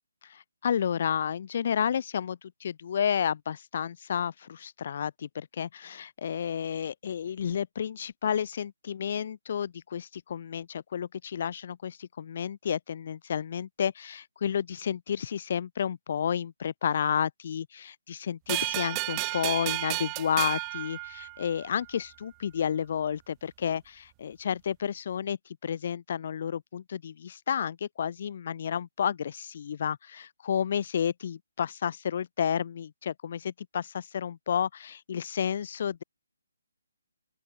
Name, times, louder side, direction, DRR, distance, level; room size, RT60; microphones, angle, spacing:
voice 1, 0.2-36.0, left 8 dB, 40° left, 2.4 m, -31 dB
sound 1, 18.5-21.7, right 37 dB, 20° right, 2.0 m, -32 dB
open air
figure-of-eight pair, 140°, 0 cm